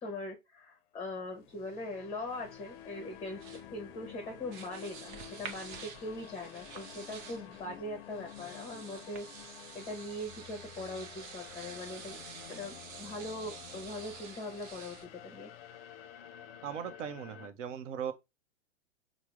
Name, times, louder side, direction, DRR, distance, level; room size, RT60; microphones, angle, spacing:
voice 1, 0.0-3.4 3.7-9.3 9.7-12.2 12.5-15.5, left 1 dB, 15° left, 0.6 m, -41 dB
sound 1, 1.2-17.5, left 10 dB, 50° left, 0.4 m, -51 dB
sound 2, 2.3-15.1, right 6 dB, 40° right, 0.6 m, -50 dB
voice 2, 16.6-18.1, right 8 dB, 75° right, 0.7 m, -38 dB
3.5 x 2.0 x 2.9 m
hypercardioid pair, 125°, 38 cm